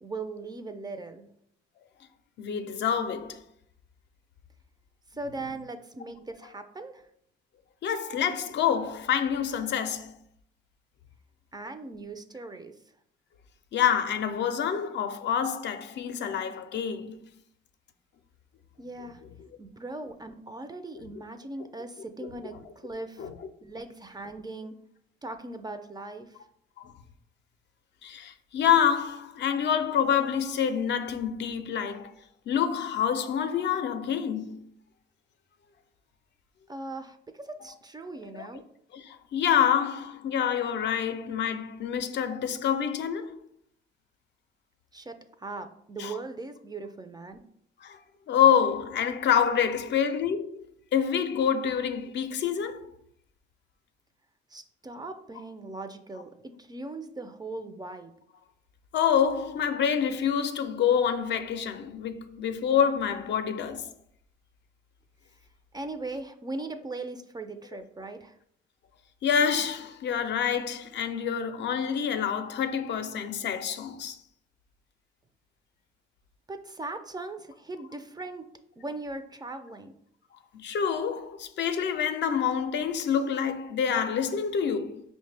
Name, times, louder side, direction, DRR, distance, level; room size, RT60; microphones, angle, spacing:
voice 1, 0.0-1.3 5.1-7.1 11.5-12.7 18.8-19.2 19.6-23.3 23.6-24.7 25.2-26.3 36.7-38.6 44.9-47.4 54.5-58.1 65.7-68.4 76.5-78.5 78.8-79.9, right 2 dB, 20° right, 0.4 m, -39 dB
voice 2, 2.4-3.4 7.8-10.1 13.7-17.2 19.0-19.1 20.9-21.1 22.2-22.3 23.2-23.5 26.8-26.9 28.0-32.1 32.5-34.7 38.4-38.5 38.9-43.3 46.0-46.2 47.8-48.0 48.3-50.5 50.9-52.9 58.9-63.9 69.2-74.2 80.5-85.0, left 8 dB, 55° left, 0.5 m, -27 dB
5.2 x 2.1 x 3.2 m
supercardioid pair, 70°, 21 cm